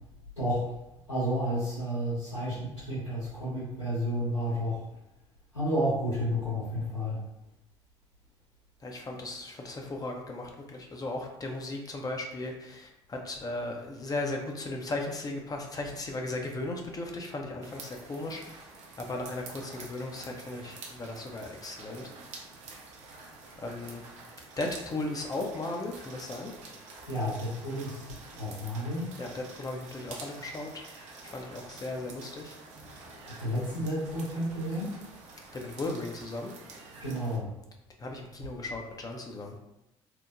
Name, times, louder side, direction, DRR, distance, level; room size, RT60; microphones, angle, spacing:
voice 1, 0.4-0.7 1.1-4.8 5.5-7.2 27.1-29.1 33.4-35.0 37.0-37.5, equal, 85° left, -15 dB, 1.5 m, -31 dB
voice 2, 8.8-18.4 19.0-22.1 23.6-24.0 24.6-26.5 29.2-30.9 31.2-32.6 35.5-36.5 38.0-39.6, left 2 dB, 25° left, 2 dB, 0.5 m, -36 dB
sound 1, 17.6-37.4, right 3 dB, 55° right, 0.5 m, -48 dB
3.0 x 2.0 x 2.5 m, 0.88 s
figure-of-eight pair, 55°, 15 cm